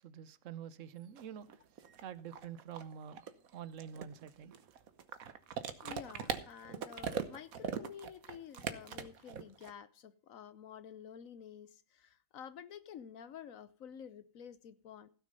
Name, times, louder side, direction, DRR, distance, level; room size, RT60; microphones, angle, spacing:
voice 1, 0.0-4.8, right 8 dB, 70° right, 1.1 m, -48 dB
sound 1, 1.2-1.3 1.5-9.7, right 7 dB, 90° right, 1.5 m, -40 dB
voice 2, 5.8-15.1, left 8 dB, 75° left, 1.2 m, -50 dB
16.0 x 6.5 x 5.4 m
omnidirectional pair, 1.4 m